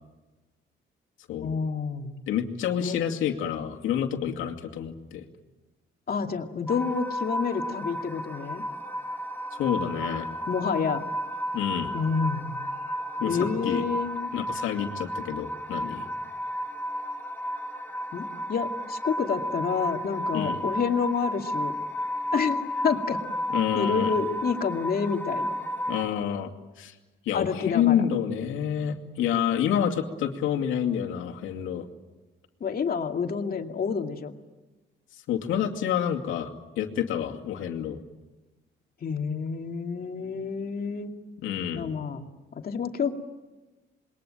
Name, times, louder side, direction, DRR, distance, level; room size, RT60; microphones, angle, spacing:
voice 1, 1.4-2.2 2.8-3.0 6.1-8.6 10.5-11.2 11.9-12.5 13.3-14.3 18.1-21.8 22.3-23.2 23.8-25.6 27.3-28.0 32.6-34.3 39.0-41.1 41.8-43.1, left 6 dB, 50° left, 4 dB, 2.5 m, -29 dB
voice 2, 2.3-5.3 9.5-10.3 11.5-11.9 13.2-13.8 14.3-16.1 20.3-20.6 23.5-24.1 25.9-26.5 26.8-26.9 27.3-31.9 35.3-36.5 36.8-38.0 41.4-41.9, left 9 dB, 90° left, 2 dB, 2.5 m, -28 dB
sound 1, 6.7-26.0, equal, 10° left, 3.0 m, -33 dB
27.5 x 22.0 x 9.1 m, 1.1 s
cardioid pair, 90°, 20 cm